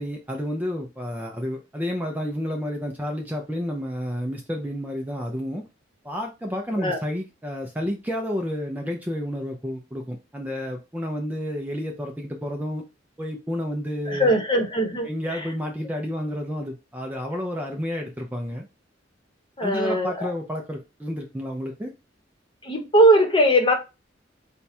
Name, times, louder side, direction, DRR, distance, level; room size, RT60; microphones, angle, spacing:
voice 1, 0.0-5.6 6.0-12.8 13.2-14.3 15.0-18.7 19.6-21.9, equal, 10° right, 0.5 m, -30 dB
voice 2, 14.1-15.5 19.6-20.3 22.6-23.7, right 1 dB, 25° left, 1.0 m, -20 dB
4.4 x 2.3 x 4.1 m
head